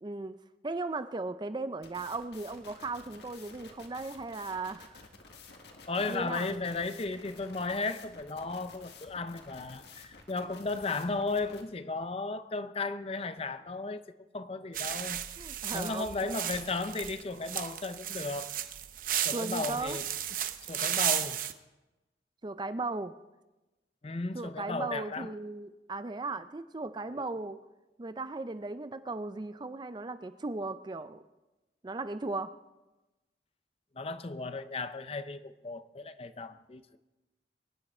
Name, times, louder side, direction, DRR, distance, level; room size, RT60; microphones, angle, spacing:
voice 1, 0.0-5.1 6.1-6.5 15.4-16.4 19.3-20.0 22.4-23.2 24.3-27.6 28.0-31.2 31.8-32.5, right 3 dB, 25° right, 0.4 m, -37 dB
sound 1, 1.8-11.6, left 4 dB, 70° left, 1.7 m, -52 dB
voice 2, 5.9-14.0 14.3-15.2 15.7-18.5 19.2-20.0 20.7-21.5 24.0-25.3 33.9-37.0, left 3 dB, 35° left, 0.6 m, -35 dB
sound 2, 14.7-21.5, right 10 dB, 50° right, 0.7 m, -34 dB
23.0 x 10.5 x 4.3 m
head